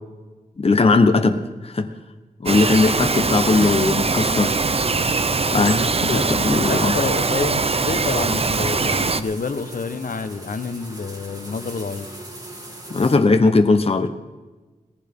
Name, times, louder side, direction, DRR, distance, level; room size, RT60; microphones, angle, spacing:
voice 1, 0.6-1.4 1.6-1.9 2.4-4.5 5.5-5.8 6.1-7.0 12.9-14.1, left 3 dB, 45° left, 7 dB, 1.0 m, -18 dB
Bird vocalization bird call bird song, 2.5-9.2, right 4 dB, 45° right, 0.7 m, -22 dB
voice 2, 3.5-4.0 5.5-6.3 6.6-12.1, left 4 dB, 75° left, 10 dB, 1.1 m, -28 dB
sound 1, 5.4-13.2, right 1 dB, 25° right, 3.1 m, -40 dB
18.5 x 14.5 x 3.7 m, 1.2 s
wide cardioid pair, 75°, 15 cm